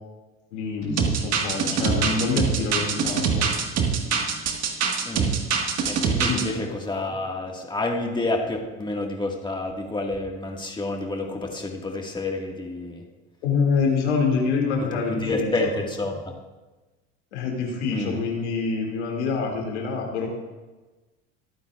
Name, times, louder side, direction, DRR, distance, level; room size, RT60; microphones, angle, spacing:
voice 1, 0.5-3.5 6.3-6.4 13.4-15.7 17.3-20.3, left 5 dB, 90° left, 0 dB, 2.6 m, -26 dB
sound 1, 0.8-7.4 7.7-8.1 8.4-8.5, left 2 dB, 70° left, 3.7 m, -40 dB
sound 2, 1.0-6.4, right 6 dB, 50° right, 1.8 m, -24 dB
voice 2, 5.0-5.4 5.9-13.0 14.8-16.2 17.9-18.2, left 2 dB, 15° left, 1 dB, 1.9 m, -29 dB
24.0 x 9.0 x 2.5 m, 1.2 s
hypercardioid pair, 80°, 33 cm